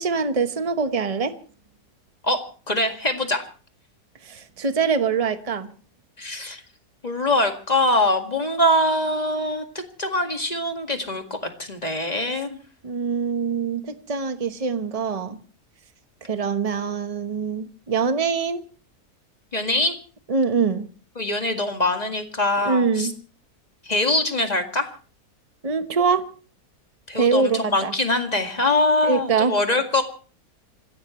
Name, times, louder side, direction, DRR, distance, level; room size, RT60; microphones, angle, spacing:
voice 1, 0.0-1.3 4.2-5.7 12.8-15.4 16.2-18.6 20.3-20.9 22.6-23.1 25.6-26.3 27.1-27.9 29.0-29.6, right 5 dB, 25° right, 1.1 m, -24 dB
voice 2, 2.7-3.4 6.2-6.6 7.0-12.6 19.5-20.0 21.2-23.1 23.9-24.9 27.1-30.0, left 1 dB, 25° left, 2.0 m, -23 dB
27.5 x 16.0 x 3.2 m
omnidirectional pair, 1.7 m